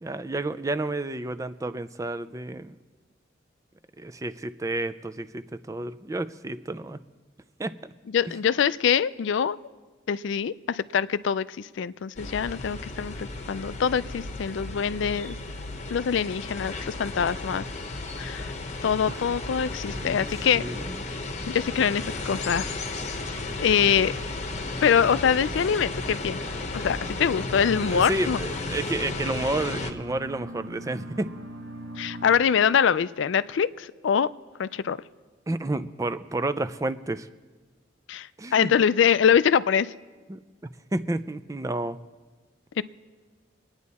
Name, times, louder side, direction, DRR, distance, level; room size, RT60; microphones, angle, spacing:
voice 1, 0.0-2.8 4.0-7.0 7.6-7.7 19.1-19.2 19.9-21.0 27.3-27.4 27.8-31.3 35.5-37.3 38.4-38.7 40.3-40.4 40.9-42.0, right 2 dB, 15° right, 12 dB, 0.4 m, -31 dB
voice 2, 8.1-9.6 10.1-15.4 15.9-17.6 18.2-18.5 18.8-20.7 21.5-22.8 23.6-24.1 24.8-26.4 26.7-28.4 32.0-34.3 34.6-35.0 38.1-39.9 42.8-42.9, left 7 dB, 70° left, 17 dB, 0.4 m, -24 dB
sound 1, 12.2-29.9, left 2 dB, 35° left, 1.0 m, -34 dB
sound 2, 26.7-32.3, right 1 dB, 90° right, 2.8 m, -42 dB
26.0 x 9.7 x 4.2 m, 1.4 s
head